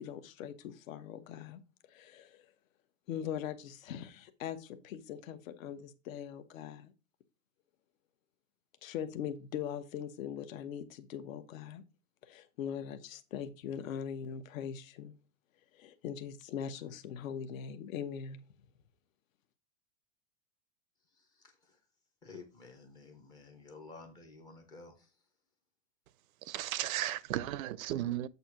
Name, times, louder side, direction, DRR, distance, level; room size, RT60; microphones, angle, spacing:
voice 1, 0.0-1.6 1.9-2.5 3.1-6.9 8.8-11.8 12.2-15.1 15.7-18.4, left 8 dB, 75° left, 1.0 m, -41 dB
voice 2, 21.1-21.8 22.2-25.1, left 3 dB, 10° left, 0.4 m, -53 dB
voice 3, 26.4-28.3, right 13 dB, 85° right, 0.6 m, -35 dB
8.0 x 2.7 x 5.7 m
supercardioid pair, 165°, 40 cm